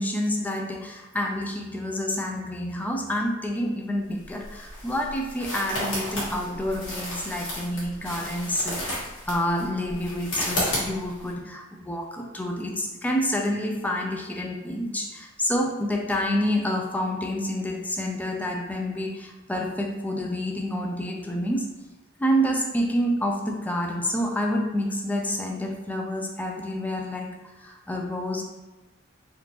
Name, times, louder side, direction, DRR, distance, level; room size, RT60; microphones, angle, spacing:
voice 1, 0.0-21.7 22.2-28.4, equal, 10° left, 1 dB, 0.4 m, -28 dB
sound 1, 4.1-11.3, left 1 dB, 75° left, 1.2 m, -33 dB
3.5 x 2.5 x 2.8 m, 1.1 s
head